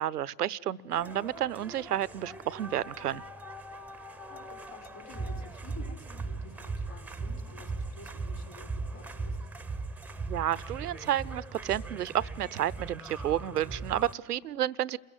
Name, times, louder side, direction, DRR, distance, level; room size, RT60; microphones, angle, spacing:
voice 1, 0.0-3.2 10.3-15.0, right 12 dB, 85° right, 20 dB, 0.6 m, -31 dB
sound 1, 0.9-14.1, right 3 dB, 5° right, 0.8 m, -39 dB
voice 2, 4.1-9.4, left 3 dB, 35° left, 1 dB, 5.7 m, -51 dB
27.5 x 15.5 x 9.7 m, 1.3 s
hypercardioid pair, 85°, 45 cm